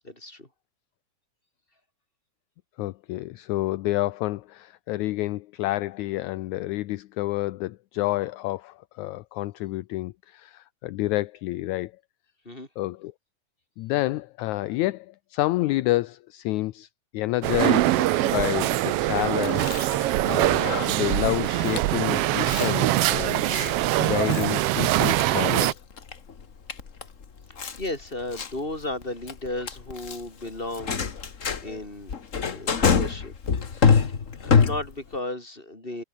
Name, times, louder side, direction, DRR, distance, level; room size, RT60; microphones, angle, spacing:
voice 1, 0.0-0.5 12.4-12.7 27.5-31.1 31.6-32.2 32.5-33.3 33.8-34.1 34.4-36.0, left 2 dB, 15° left, 6.2 m, -34 dB
voice 2, 2.8-11.9 12.8-13.1 13.8-16.9 17.1-19.7 20.2-23.5 24.0-25.7, left 17 dB, 75° left, 2.0 m, -29 dB
sound 1, 17.4-25.7, right 16 dB, 90° right, 1.3 m, -23 dB
Chewing mastication, 19.2-35.2, left 6 dB, 40° left, 1.2 m, -27 dB
omnidirectional pair, 3.5 m